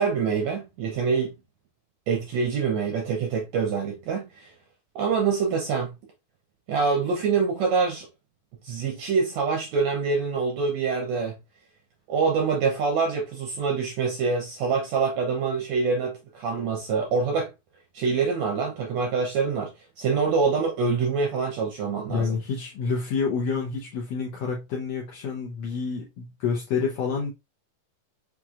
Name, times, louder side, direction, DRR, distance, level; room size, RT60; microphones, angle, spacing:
voice 1, 0.0-1.3 2.1-4.5 4.9-5.9 6.7-8.1 8.6-11.4 12.1-17.5 17.9-22.4, right 5 dB, 75° right, 1.6 m, -25 dB
voice 2, 22.1-27.3, left 5 dB, 75° left, 1.5 m, -28 dB
5.9 x 3.0 x 2.4 m
omnidirectional pair, 3.9 m